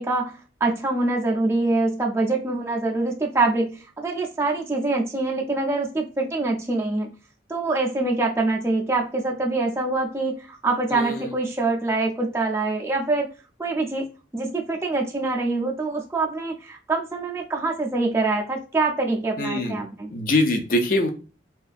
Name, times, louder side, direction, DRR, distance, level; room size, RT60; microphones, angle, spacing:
voice 1, 0.0-3.7 4.0-7.1 7.5-10.3 10.6-13.3 13.6-14.0 14.3-20.1, right 3 dB, 15° right, 0 dB, 0.4 m, -24 dB
voice 2, 10.9-11.3 19.4-19.8 20.1-21.1, left 1 dB, 45° left, 5 dB, 0.4 m, -23 dB
2.6 x 2.3 x 2.4 m, 0.34 s
head